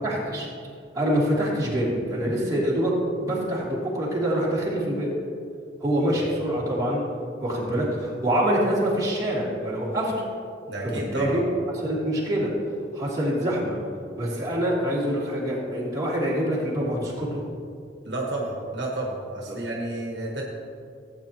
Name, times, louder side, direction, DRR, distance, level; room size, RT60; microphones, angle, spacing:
voice 1, 0.0-0.5 0.9-2.9 3.2-5.1 5.8-7.0 7.4-10.3 10.8-11.4 11.8-12.5 12.9-13.8 14.2-17.4 19.5-19.6, equal, 20° right, -7 dB, 2.8 m, -25 dB
voice 2, 10.7-11.4 18.0-20.4, right 2 dB, 65° right, -2 dB, 1.5 m, -31 dB
16.5 x 8.9 x 2.9 m, 2.4 s
head